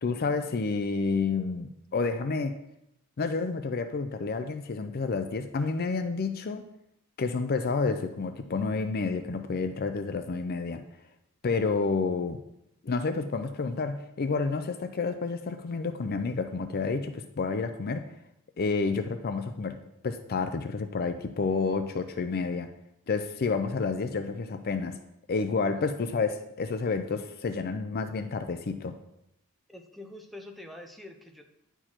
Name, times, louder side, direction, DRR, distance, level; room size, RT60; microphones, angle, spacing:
voice 1, 0.0-2.6 3.2-6.7 7.2-10.8 11.4-12.4 12.8-18.1 18.6-19.8 20.0-22.7 23.1-25.0 25.3-29.0, left 4 dB, 45° left, 8 dB, 0.5 m, -30 dB
voice 2, 29.7-31.4, left 1 dB, ahead, 3 dB, 0.7 m, -45 dB
10.0 x 4.6 x 4.3 m, 0.83 s
head